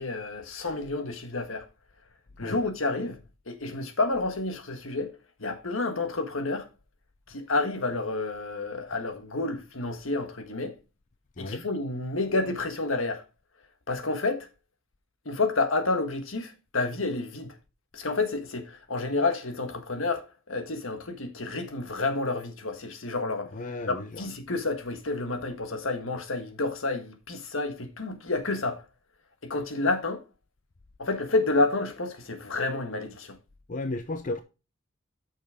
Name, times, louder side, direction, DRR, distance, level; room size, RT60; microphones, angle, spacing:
voice 1, 0.0-1.7 2.4-3.2 3.5-6.7 7.3-10.7 11.4-13.2 13.9-14.5 15.2-17.5 17.9-23.5 23.9-28.8 29.4-30.2 31.0-33.4, left 3 dB, 75° left, 1.6 m, -29 dB
voice 2, 23.5-24.2 33.7-34.4, left 2 dB, 40° left, 0.6 m, -34 dB
8.6 x 6.4 x 3.7 m
head